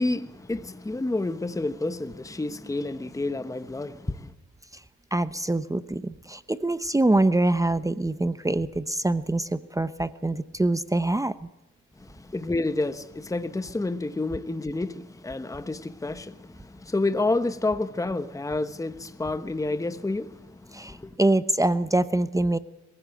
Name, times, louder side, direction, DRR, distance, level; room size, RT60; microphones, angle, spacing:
voice 1, 0.0-4.3 12.0-21.2, left 2 dB, 10° left, 1.1 m, -29 dB
voice 2, 5.1-11.5 20.7-22.6, right 2 dB, 10° right, 0.9 m, -24 dB
22.5 x 16.0 x 7.8 m
cardioid pair, 90°, 30 cm